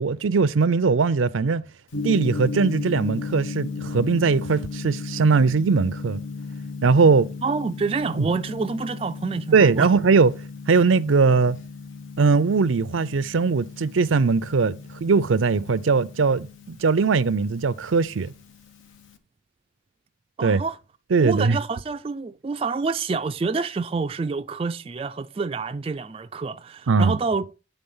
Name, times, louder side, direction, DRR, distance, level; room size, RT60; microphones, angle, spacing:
voice 1, 0.0-1.6 2.0-6.2 6.8-7.3 8.2-8.3 9.5-10.3 10.7-11.6 12.2-18.3 20.4-20.6 21.1-21.6 26.9-27.2, right 4 dB, 85° right, 0.5 m, -20 dB
Gong, 1.9-19.2, left 4 dB, 85° left, 1.1 m, -36 dB
voice 2, 7.4-9.9 20.4-20.8 21.2-27.5, right 4 dB, 30° right, 0.3 m, -27 dB
9.0 x 3.8 x 5.5 m
head